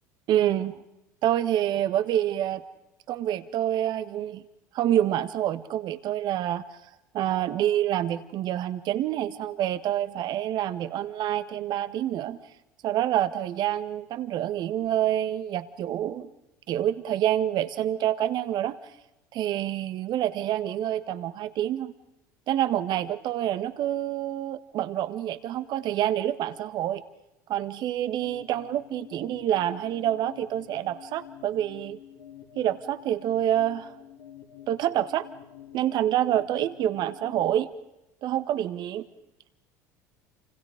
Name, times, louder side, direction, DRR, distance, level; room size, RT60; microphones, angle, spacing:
voice 1, 0.3-0.8 1.2-2.6 3.1-4.4 4.7-6.6 7.1-12.4 12.8-16.3 16.7-18.8 19.3-21.9 22.5-27.0 27.5-32.0 32.5-33.9 34.7-35.3 35.7-37.7 38.2-39.1, right 11 dB, 50° right, 12 dB, 1.7 m, -27 dB
sound 1, 28.1-37.5, left 11 dB, 70° left, 4.1 m, -48 dB
29.0 x 27.0 x 5.2 m, 0.91 s
hypercardioid pair, 75°, 9 cm